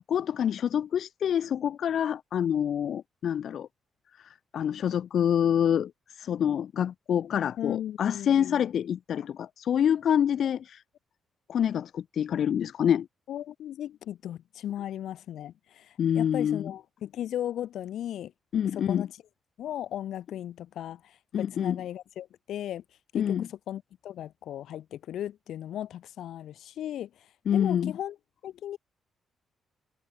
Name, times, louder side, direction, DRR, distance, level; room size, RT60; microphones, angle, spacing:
voice 1, 0.0-3.7 4.2-10.8 11.5-13.1 16.0-16.7 18.5-19.1 21.3-21.8 23.1-23.5 27.5-27.9, left 9 dB, 55° left, 0.8 m, -27 dB
voice 2, 7.6-8.6 10.4-10.5 13.3-18.3 18.7-19.1 19.6-22.8 23.1-27.1 27.5-28.2 28.4-28.8, left 11 dB, 75° left, 7.1 m, -36 dB
cardioid pair, 155°, 0 cm